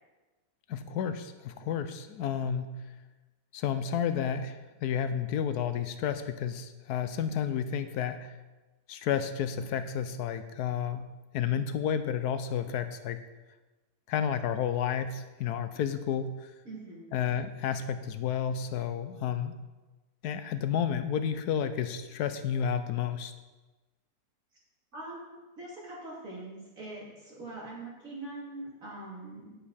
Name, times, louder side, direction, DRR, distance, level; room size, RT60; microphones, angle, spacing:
voice 1, 0.7-2.7 3.5-4.5 4.8-8.3 8.9-11.1 11.3-13.2 14.1-16.3 17.1-19.6 20.2-23.3, left 8 dB, 85° left, 10 dB, 1.2 m, -31 dB
voice 2, 16.6-17.1 24.9-29.6, right 2 dB, 60° right, -6 dB, 3.3 m, -43 dB
9.3 x 7.4 x 4.2 m, 1.2 s
omnidirectional pair, 1.6 m